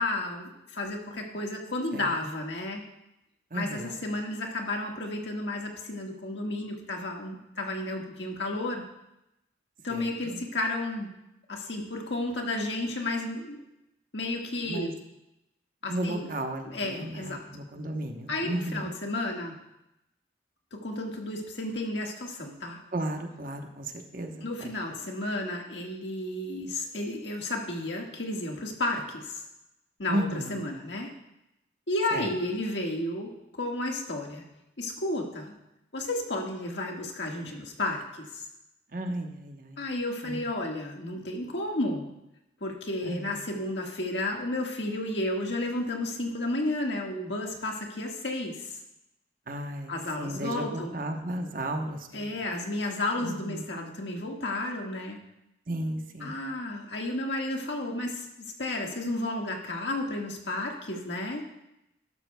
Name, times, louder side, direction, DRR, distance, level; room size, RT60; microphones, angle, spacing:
voice 1, 0.0-2.8 3.5-8.8 9.8-11.1 11.5-13.6 14.1-14.9 15.8-16.3 16.7-17.4 18.3-19.5 20.7-22.8 24.4-29.4 30.0-30.2 30.5-31.1 31.9-34.4 34.8-35.5 35.9-38.4 39.8-42.0 42.6-48.8 49.9-50.9 52.1-55.2 56.2-61.4, left 2 dB, 75° left, 1 dB, 1.7 m, -32 dB
voice 2, 3.5-4.0 9.9-10.4 14.6-14.9 15.9-18.9 22.9-24.7 30.1-30.7 32.1-32.3 38.9-39.8 40.2-40.5 43.0-43.4 49.5-49.9 50.2-52.3 53.2-53.6 55.7-56.4, right 1 dB, 45° right, 4 dB, 1.0 m, -34 dB
12.5 x 12.5 x 2.3 m, 0.88 s
head